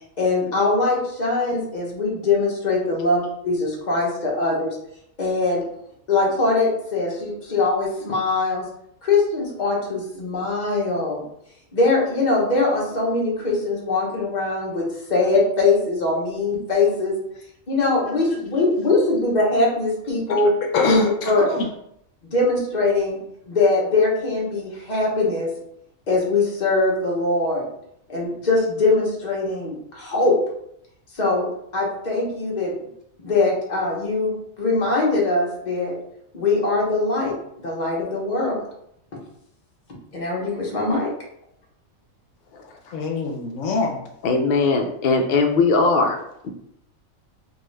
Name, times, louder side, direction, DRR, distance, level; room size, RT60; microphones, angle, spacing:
voice 1, 0.2-4.8 5.2-5.6 6.1-8.6 9.0-11.2 11.7-14.8 15.1-17.1 17.7-20.5 20.9-21.0 21.2-21.6 22.2-23.2 23.5-25.5 26.1-27.7 28.1-30.3 31.1-31.5 31.7-32.7 33.2-35.9 36.3-38.6 40.1-41.1, left 3 dB, 35° left, -3 dB, 1.0 m, -22 dB
voice 2, 20.7-21.7 42.9-44.0, left 3 dB, 70° left, 2 dB, 0.9 m, -23 dB
voice 3, 44.2-46.2 46.4-46.5, left 3 dB, 90° left, 3 dB, 0.4 m, -19 dB
3.6 x 2.4 x 3.2 m, 0.74 s
omnidirectional pair, 1.4 m